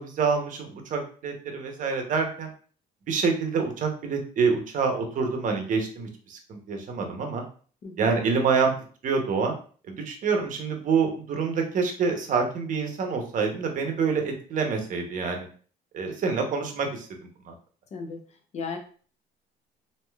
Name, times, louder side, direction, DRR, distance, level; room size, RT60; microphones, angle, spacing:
voice 1, 0.0-2.5 3.1-7.4 8.0-8.7 9.0-9.6 9.9-15.5 15.9-17.1 17.4-17.5, right 5 dB, 50° right, 3 dB, 0.8 m, -26 dB
voice 2, 7.8-8.1 17.9-18.2 18.5-18.8, left 5 dB, 40° left, 4 dB, 0.7 m, -35 dB
3.2 x 2.6 x 2.3 m, 0.42 s
cardioid pair, 110°, 17 cm